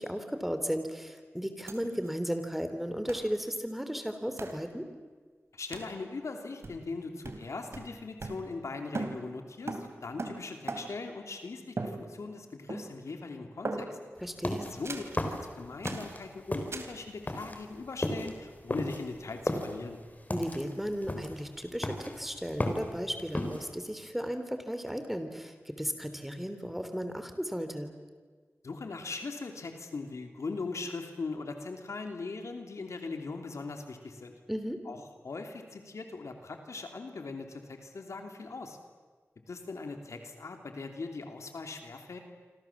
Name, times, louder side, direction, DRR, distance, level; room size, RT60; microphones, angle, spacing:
voice 1, 0.0-4.9 14.2-14.7 20.3-27.9 34.5-34.8, equal, 5° right, 8 dB, 3.3 m, -35 dB
sound 1, 1.7-1.8 2.1-2.2 3.1-3.3 4.4-4.6 5.7-6.0 6.6-7.0 7.2-8.7 8.9-11.1 11.8-12.4 12.7-13.2 13.7-14.2 14.8-15.2 15.8-16.1 16.7-17.0, right 3 dB, 65° right, 3.1 m, -39 dB
voice 2, 5.5-14.0 14.7-15.0 15.3-20.0 28.6-34.4 34.9-38.8 39.5-42.2, left 3 dB, 85° left, 5 dB, 3.0 m, -40 dB
sound 2, 14.2-16.2 16.5-23.7, left 1 dB, 35° left, 4.1 m, -34 dB
28.0 x 25.5 x 7.4 m, 1.5 s
wide cardioid pair, 60°, 5 cm